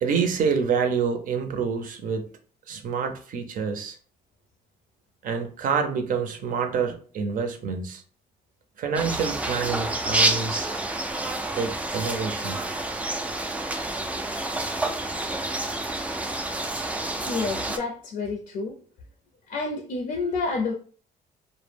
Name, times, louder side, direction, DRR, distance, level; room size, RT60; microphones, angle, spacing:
voice 1, 0.0-2.3 2.7-4.0 5.2-8.0 8.8-10.7 11.6-12.6, right 6 dB, 55° right, 6 dB, 0.6 m, -27 dB
sound 1, 8.9-17.8, right 2 dB, 10° right, 0.3 m, -28 dB
voice 2, 17.2-18.7 19.5-20.7, left 3 dB, 55° left, 1 dB, 0.5 m, -29 dB
2.1 x 2.0 x 3.3 m, 0.42 s
cardioid pair, 110°, 17 cm